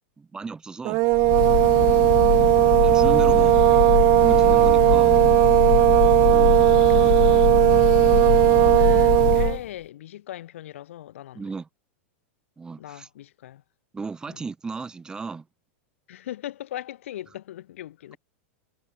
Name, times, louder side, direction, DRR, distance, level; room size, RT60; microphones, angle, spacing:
voice 1, 0.2-1.0 2.6-3.6 4.2-5.2 6.2-6.6 7.0-7.1 11.4-11.7 12.6-13.1 13.9-15.5, right 4 dB, 10° right, 2.5 m, -35 dB
sound 1, 0.8-9.6, right 26 dB, 40° right, 0.4 m, -17 dB
Breathing / Bird, 1.1-9.7, left 20 dB, 55° left, 0.4 m, -24 dB
voice 2, 1.8-2.9 5.9-11.5 12.8-13.6 14.3-14.4 16.1-18.2, left 13 dB, 85° left, 1.5 m, -40 dB
supercardioid pair, 155°, 7 cm